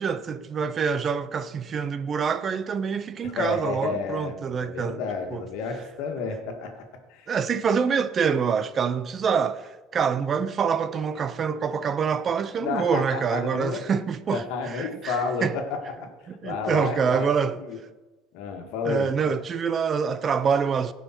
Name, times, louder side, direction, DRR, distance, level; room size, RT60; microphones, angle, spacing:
voice 1, 0.0-5.0 5.3-5.4 7.3-15.2 15.4-15.5 16.4-17.6 18.8-20.9, right 6 dB, 30° right, 0.5 m, -26 dB
voice 2, 3.2-6.7 7.1-7.3 12.6-13.8 14.3-16.1 16.4-17.8 18.3-19.1, left 5 dB, 70° left, 1.8 m, -31 dB
17.0 x 5.7 x 4.5 m
cardioid pair, 140°, 0 cm